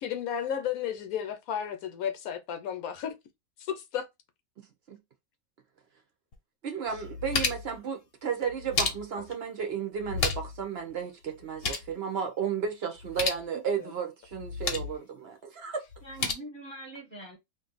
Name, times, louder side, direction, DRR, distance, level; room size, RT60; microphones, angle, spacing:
voice 1, 0.0-3.1 3.6-4.0 14.7-14.8, left 8 dB, 75° left, 1.0 m, -33 dB
voice 2, 4.6-5.0 6.6-15.8, right 7 dB, 60° right, 0.7 m, -33 dB
sound 1, 6.3-6.4 6.9-7.8 8.5-9.3 10.0-10.6 10.9-11.0 11.3-11.9 13.0-13.4 14.3-15.0 15.9-16.3, left 4 dB, 50° left, 0.8 m, -32 dB
voice 3, 13.5-13.9 16.0-17.4, right 2 dB, 10° left, 0.8 m, -44 dB
2.6 x 2.5 x 3.9 m
omnidirectional pair, 1.6 m